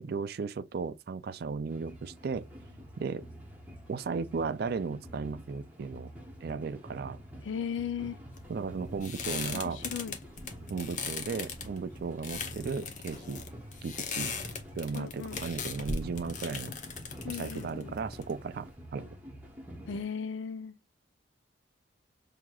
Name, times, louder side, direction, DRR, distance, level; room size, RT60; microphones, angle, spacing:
voice 1, 0.0-2.5 3.0-3.2 3.9-6.1 6.4-7.2 8.5-9.8 10.7-13.4 13.8-14.3 14.7-16.7 17.3-19.1, right 5 dB, 55° right, 0.4 m, -35 dB
sound 1, 1.7-20.0, equal, 10° right, 1.0 m, -48 dB
voice 2, 7.4-8.2 9.5-10.2 14.9-15.4 17.2-17.9 19.9-20.7, left 7 dB, 85° left, 0.4 m, -37 dB
sound 2, 8.3-18.7, left 5 dB, 40° left, 0.7 m, -39 dB
5.9 x 2.8 x 2.3 m
head